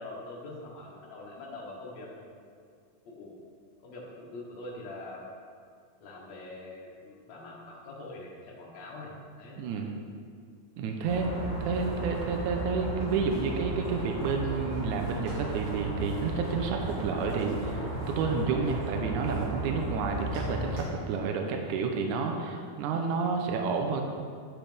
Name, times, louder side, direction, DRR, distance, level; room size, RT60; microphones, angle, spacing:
voice 1, 0.0-2.4 3.1-3.3 3.8-5.2 6.0-9.6, left 2 dB, 60° left, -3 dB, 2.4 m, -44 dB
voice 2, 9.6-9.9 10.8-11.3 11.6-24.0, right 5 dB, 80° right, 3 dB, 1.9 m, -30 dB
sound 1, 11.0-20.9, right 2 dB, 55° right, 3.5 m, -35 dB
10.5 x 5.8 x 3.4 m, 2.2 s
omnidirectional pair, 3.7 m